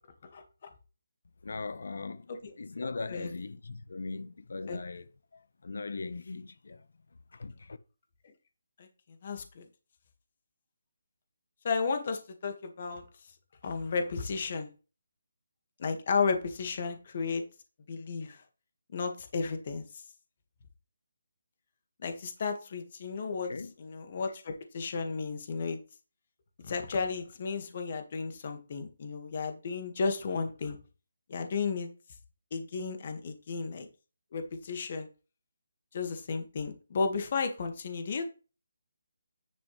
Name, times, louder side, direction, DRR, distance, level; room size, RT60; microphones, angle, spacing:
voice 1, 1.4-5.0 5.6-6.9 7.3-7.8 23.5-23.7, left 3 dB, 65° left, 1.1 m, -39 dB
voice 2, 2.3-3.3 4.7-4.8 8.8-8.9 9.2-9.7 11.6-13.1 13.6-14.7 15.8-17.4 17.9-18.4 18.9-20.0 22.0-25.8 26.6-30.8 31.3-31.9 32.5-33.9 34.3-35.1 35.9-38.3, left 5 dB, 40° left, 1.8 m, -33 dB
10.0 x 6.8 x 3.3 m
hypercardioid pair, 170°, 0 cm